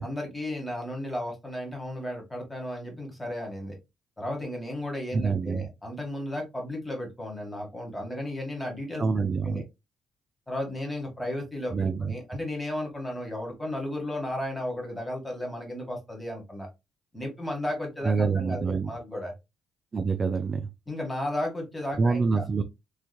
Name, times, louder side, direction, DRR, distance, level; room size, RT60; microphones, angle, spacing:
voice 1, 0.0-3.8 4.2-9.6 10.5-16.7 17.1-19.3 20.9-22.4, left 1 dB, 10° left, 1.8 m, -34 dB
voice 2, 5.1-5.6 9.0-9.6 11.7-12.1 18.0-18.9 19.9-20.7 22.0-22.6, right 4 dB, 35° right, 0.4 m, -26 dB
3.4 x 3.1 x 2.2 m
cardioid pair, 90°, 0 cm